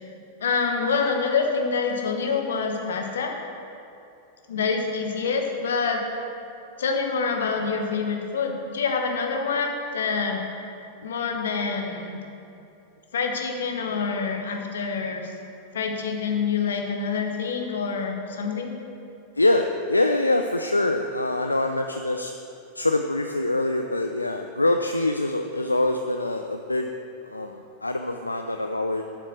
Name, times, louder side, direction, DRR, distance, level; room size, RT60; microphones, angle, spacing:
voice 1, 0.4-3.3 4.5-6.0 6.8-10.4 11.0-12.2 13.1-15.3 15.7-18.8, left 5 dB, 65° left, 3 dB, 1.2 m, -26 dB
voice 2, 19.4-22.3 22.7-26.9 27.2-29.0, left 2 dB, 85° left, 5 dB, 0.4 m, -24 dB
8.3 x 5.9 x 7.5 m, 2.8 s
figure-of-eight pair, 90°, 0 cm